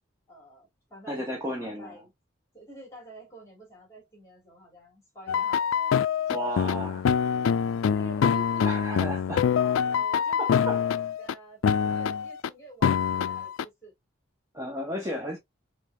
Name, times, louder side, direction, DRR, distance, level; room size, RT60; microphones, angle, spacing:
voice 1, 0.3-2.1 2.5-6.0 6.3-7.2 7.8-13.9, right 2 dB, 15° left, 2.8 m, -48 dB
voice 2, 1.1-2.0 6.3-7.0 8.6-9.4 10.4-10.8 11.9-12.0 14.5-15.4, equal, 15° right, 0.9 m, -33 dB
sound 1, 5.3-11.3 11.6-12.5 12.8-13.6, left 7 dB, 75° left, 0.3 m, -25 dB
5.2 x 3.3 x 2.3 m
head